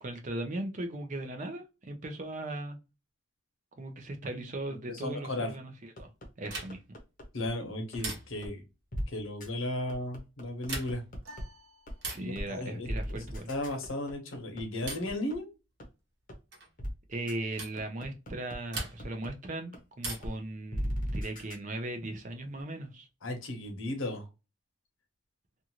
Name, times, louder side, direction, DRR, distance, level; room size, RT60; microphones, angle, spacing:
voice 1, 0.0-2.8 3.8-5.7 6.0-6.1 6.4-6.8 12.1-13.5 17.1-23.1, right 1 dB, 40° right, 0.5 m, -38 dB
voice 2, 4.7-5.5 7.3-8.6 9.1-11.0 12.1-13.2 13.5-15.5 23.2-24.3, left 1 dB, 75° left, 0.9 m, -35 dB
sound 1, 6.0-7.5 7.9-8.0 8.4-8.5 8.9-9.0 9.4-9.5 9.9-11.4 11.9-12.0 12.4-12.5 12.9-15.3 15.8-15.9 16.3-16.4 16.8-16.9 17.3-17.4 17.8-19.3 19.7-19.8 20.2-20.3 20.7-21.6, equal, 40° left, 0.7 m, -36 dB
sound 2, 6.5-7.0 8.0-8.6 10.5-11.2 12.0-12.4 13.6-14.0 14.9-15.2 16.5-16.7 17.6-17.8 18.7-19.3 20.0-20.5 21.9-22.6, right 2 dB, 55° right, 1.0 m, -40 dB
sound 3, 11.2-12.7, right 1 dB, 80° right, 0.9 m, -54 dB
2.6 x 2.4 x 2.9 m
head